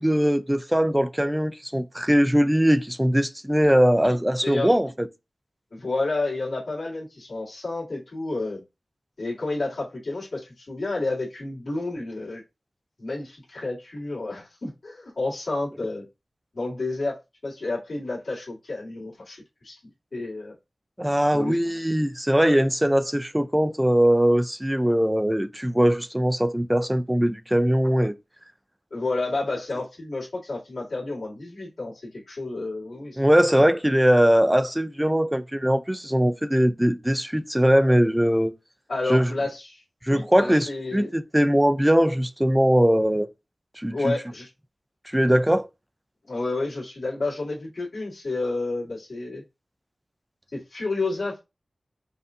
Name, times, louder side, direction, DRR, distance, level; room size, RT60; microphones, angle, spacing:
voice 1, 0.0-4.9 21.0-28.1 33.2-38.5 39.1-39.3 40.0-43.3 43.8-44.1 45.1-45.7, equal, 10° right, 0.5 m, -21 dB
voice 2, 4.4-4.7 5.7-8.6 9.2-12.4 13.0-16.1 16.5-19.8 20.1-20.5 21.3-21.6 28.9-33.2 38.9-39.8 40.1-41.1 43.9-44.5 46.3-49.4 50.5-51.4, left 2 dB, 75° left, 2.0 m, -30 dB
5.3 x 2.4 x 2.5 m
cardioid pair, 45°, 0 cm